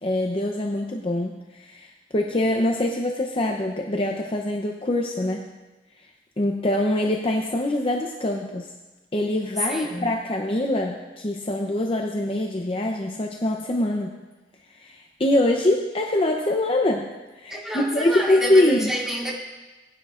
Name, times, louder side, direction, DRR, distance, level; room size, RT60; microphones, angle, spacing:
voice 1, 0.0-5.5 6.4-8.7 9.1-14.2 14.8-18.9, left 1 dB, 30° left, 1 dB, 0.6 m, -24 dB
voice 2, 9.6-10.1 17.5-19.3, equal, 5° right, -5 dB, 2.2 m, -29 dB
18.5 x 10.0 x 2.5 m, 1.2 s
head